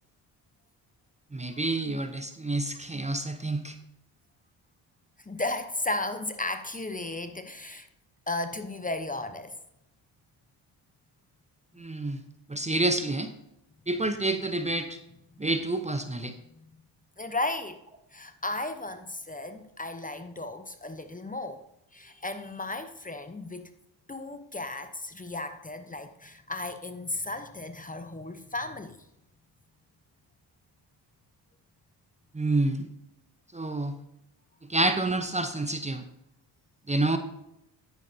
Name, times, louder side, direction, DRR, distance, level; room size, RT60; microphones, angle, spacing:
voice 1, 1.3-3.8 11.8-12.2 12.5-13.3 13.9-15.0 15.4-16.3 32.3-32.9 33.5-34.0 34.7-36.0 36.9-37.2, right 2 dB, 15° right, 8 dB, 0.8 m, -28 dB
voice 2, 5.2-7.9 8.3-9.5 16.5-16.8 17.2-17.8 18.1-21.6 21.9-23.7 24.1-29.0, left 2 dB, 15° left, 9 dB, 0.9 m, -35 dB
10.0 x 9.0 x 2.8 m, 0.82 s
supercardioid pair, 55°, 47 cm